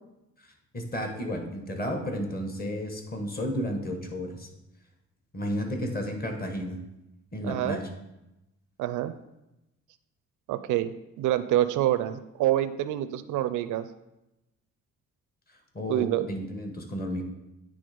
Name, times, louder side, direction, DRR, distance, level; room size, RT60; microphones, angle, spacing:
voice 1, 0.7-4.5 5.3-6.8 7.3-7.9 15.7-17.2, equal, 30° left, 4 dB, 1.5 m, -32 dB
voice 2, 7.4-7.8 8.8-9.1 10.5-13.9 15.9-16.3, right 13 dB, 85° right, 12 dB, 0.5 m, -27 dB
9.3 x 3.6 x 5.1 m, 0.93 s
cardioid pair, 90°, 30 cm